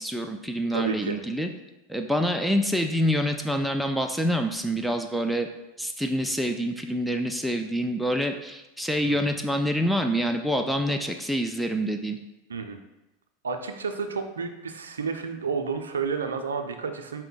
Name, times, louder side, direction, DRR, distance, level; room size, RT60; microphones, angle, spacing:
voice 1, 0.0-1.5 1.9-5.5 5.8-12.2, equal, ahead, 4 dB, 0.3 m, -26 dB
voice 2, 0.7-1.2 9.0-9.2 12.5-12.8 13.4-17.2, right 5 dB, 85° right, 6 dB, 0.4 m, -31 dB
4.3 x 2.1 x 3.9 m, 1.0 s
hypercardioid pair, 90°, 0 cm